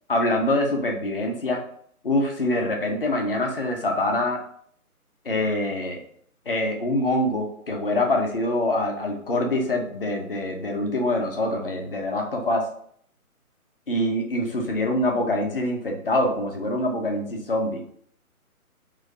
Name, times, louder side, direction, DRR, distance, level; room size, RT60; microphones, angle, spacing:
voice 1, 0.1-1.6 2.0-4.4 5.2-6.0 6.5-12.7 13.9-17.8, left 1 dB, 40° left, 2 dB, 0.6 m, -25 dB
3.1 x 2.2 x 3.7 m, 0.62 s
figure-of-eight pair, 145°, 44 cm